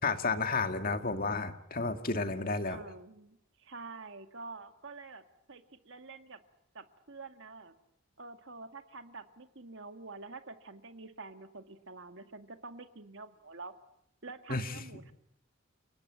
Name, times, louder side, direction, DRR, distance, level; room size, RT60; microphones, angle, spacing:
voice 1, 0.0-2.8 14.5-14.8, left 3 dB, 45° left, 7 dB, 2.2 m, -32 dB
voice 2, 2.6-5.2 5.5-6.4 6.7-7.7 8.2-13.7 14.2-15.1, right 3 dB, 60° right, 7 dB, 2.0 m, -47 dB
30.0 x 19.0 x 9.4 m, 0.75 s
head